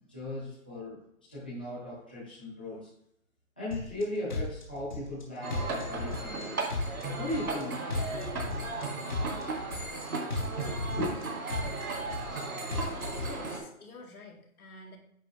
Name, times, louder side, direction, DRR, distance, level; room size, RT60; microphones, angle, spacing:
voice 1, 0.1-1.0 1.3-2.9 3.6-6.6 7.1-7.9 10.6-11.1, left 1 dB, 5° left, -13 dB, 0.8 m, -37 dB
sound 1, 3.7-4.0 4.3-5.2 5.5-6.4 6.7-7.6 7.9-8.8 9.1-10.0 10.3-11.2 11.5-12.4 12.7-13.3, left 2 dB, 35° left, 1.1 m, -35 dB
sound 2, 5.4-13.6, right 3 dB, 85° right, 3.0 m, -36 dB
voice 2, 13.1-15.0, left 3 dB, 90° left, 1 dB, 2.2 m, -49 dB
8.8 x 5.4 x 3.3 m, 0.75 s
hypercardioid pair, 180°, 42 cm